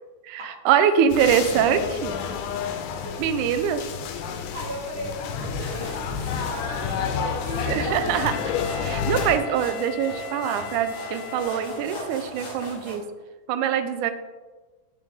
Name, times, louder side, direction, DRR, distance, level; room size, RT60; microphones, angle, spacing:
voice 1, 0.3-2.1 3.2-3.8 7.7-8.3 8.7-13.0 13.5-14.1, right 8 dB, 85° right, 9 dB, 2.0 m, -23 dB
sound 1, 1.1-9.4, left 7 dB, 90° left, 2.1 m, -30 dB
voice 2, 3.0-3.4 3.7-3.8 4.3-8.1 9.1-9.2, right 1 dB, 50° right, -3 dB, 1.9 m, -36 dB
sound 2, 5.4-13.0, left 1 dB, 50° left, 1.0 m, -39 dB
Wind instrument woodwind instrument, 8.2-12.1, left 9 dB, 75° left, 1.4 m, -38 dB
8.4 x 4.8 x 3.5 m, 1.2 s
omnidirectional pair, 3.4 m